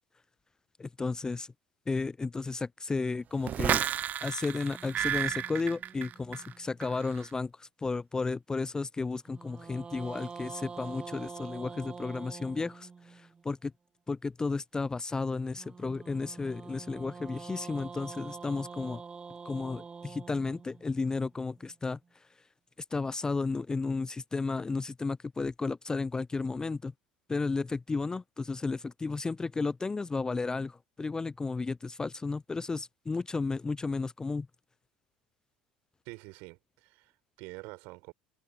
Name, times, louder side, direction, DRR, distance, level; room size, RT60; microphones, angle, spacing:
voice 1, 0.8-1.5 1.9-3.8 4.2-13.7 14.1-19.0 19.4-22.0 22.9-26.9 27.3-34.5, left 4 dB, 15° left, 0.4 m, -33 dB
sound 1, 3.4-6.5 6.8-7.2, right 10 dB, 40° right, 0.5 m, -32 dB
sound 2, 4.6-7.0 9.2-13.4 15.5-21.7, right 5 dB, 25° right, 1.2 m, -46 dB
voice 2, 36.0-38.1, right 27 dB, 60° right, 4.6 m, -47 dB
figure-of-eight pair, 70°, 4 cm